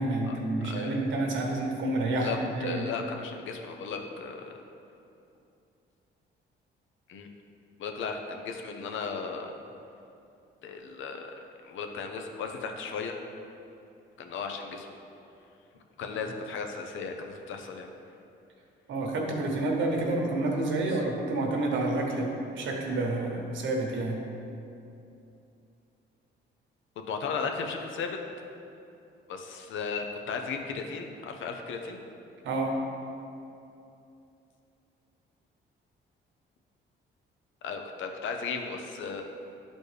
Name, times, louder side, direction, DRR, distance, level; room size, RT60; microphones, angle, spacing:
voice 1, 0.0-2.9 18.9-24.2 32.4-32.8, right 2 dB, 75° right, 0 dB, 1.2 m, -29 dB
voice 2, 0.6-1.0 2.2-4.5 7.1-7.3 7.8-9.5 10.6-11.3 11.6-13.2 14.2-14.9 16.0-17.9 27.1-28.2 29.3-32.0 37.6-39.2, left 5 dB, 75° left, 4 dB, 0.7 m, -35 dB
10.5 x 4.2 x 3.3 m, 2.7 s
cardioid pair, 90°, 20 cm